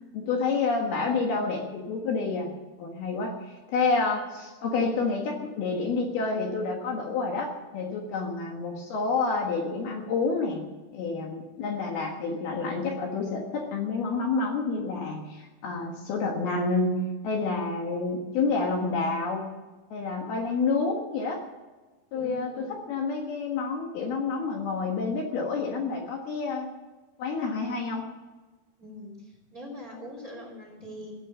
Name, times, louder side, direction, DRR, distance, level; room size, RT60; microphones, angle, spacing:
voice 1, 0.1-2.5 2.8-10.6 10.9-17.0 17.2-19.5 19.9-21.4 22.1-26.7 27.2-28.1, left 4 dB, 65° left, 1 dB, 3.2 m, -29 dB
voice 2, 22.1-22.8 28.8-31.1, left 1 dB, 20° right, -1 dB, 3.5 m, -42 dB
15.5 x 9.8 x 7.4 m, 1.2 s
omnidirectional pair, 5.2 m